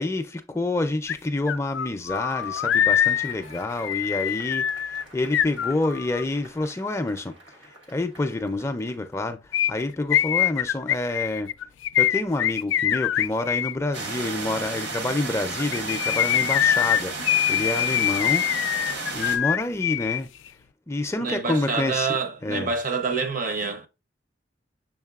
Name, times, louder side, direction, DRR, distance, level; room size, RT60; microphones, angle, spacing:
voice 1, 0.0-11.5 12.0-18.4 19.1-20.3 20.9-22.7, left 2 dB, 15° left, 0.4 m, -28 dB
sound 1, 1.1-1.2 1.5-6.2 9.5-13.7 15.6-20.2 20.5-20.6, left 11 dB, 90° left, 0.3 m, -24 dB
Cheering / Applause / Crowd, 2.1-9.3, equal, 90° right, 1.4 m, -49 dB
sound 2, 13.9-19.4, right 3 dB, 65° right, 1.0 m, -32 dB
voice 2, 21.2-23.9, right 4 dB, 45° right, 0.7 m, -27 dB
6.4 x 3.5 x 2.3 m
head